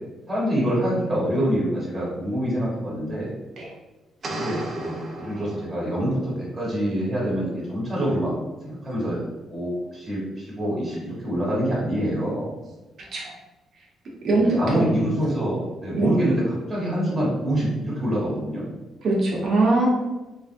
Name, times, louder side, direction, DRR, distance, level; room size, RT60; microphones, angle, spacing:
voice 1, 0.3-3.3 4.3-8.3 8.6-9.2 9.5-12.5 14.3-16.4 16.7-18.6, equal, 15° right, -6 dB, 1.4 m, -26 dB
sound 1, 4.2-6.2, right 1 dB, 45° right, 0.7 m, -34 dB
voice 2, 14.2-14.9 16.0-16.1 19.0-19.9, right 2 dB, 60° right, -4 dB, 1.0 m, -21 dB
3.3 x 2.5 x 2.7 m, 1.1 s
cardioid pair, 90°, 0 cm